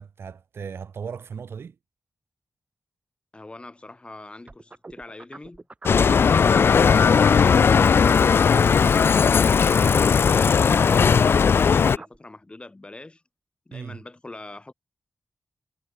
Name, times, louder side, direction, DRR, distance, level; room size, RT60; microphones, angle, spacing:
voice 1, 0.0-1.8 13.7-14.0, right 6 dB, 80° right, 2.0 m, -37 dB
voice 2, 3.3-5.7 8.3-13.2 13.7-14.7, left 2 dB, 25° left, 7.4 m, -43 dB
sound 1, 4.5-8.1 8.4-12.2, right 3 dB, 30° right, 6.7 m, -43 dB
Bicycle, 5.9-12.0, left 6 dB, 70° left, 0.6 m, -17 dB
wide cardioid pair, 85°, 4 cm